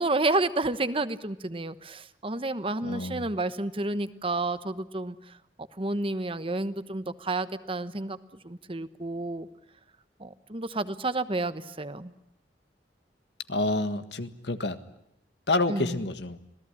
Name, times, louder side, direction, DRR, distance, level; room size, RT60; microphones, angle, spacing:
voice 1, 0.0-5.4 5.8-8.2 8.4-9.5 10.2-12.1 15.7-16.0, right 2 dB, 30° right, 13 dB, 1.1 m, -30 dB
voice 2, 2.8-3.3 13.5-14.8 15.5-16.4, left 2 dB, 70° left, 10 dB, 1.7 m, -28 dB
26.5 x 18.5 x 9.9 m, 0.82 s
head